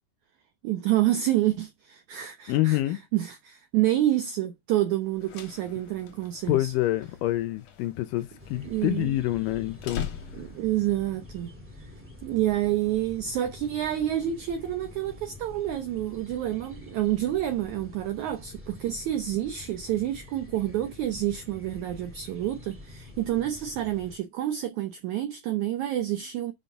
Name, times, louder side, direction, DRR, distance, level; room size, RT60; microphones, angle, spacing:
voice 1, 0.6-2.8 3.1-6.7 8.6-9.1 10.3-11.5 12.2-26.5, right 13 dB, 75° right, 1.7 m, -28 dB
voice 2, 2.5-3.0 6.5-10.1, left 16 dB, 75° left, 2.1 m, -27 dB
sound 1, 5.0-10.8, left 9 dB, 60° left, 1.8 m, -42 dB
sound 2, 8.4-24.2, left 1 dB, 5° right, 1.2 m, -47 dB
5.7 x 5.4 x 5.6 m
omnidirectional pair, 4.3 m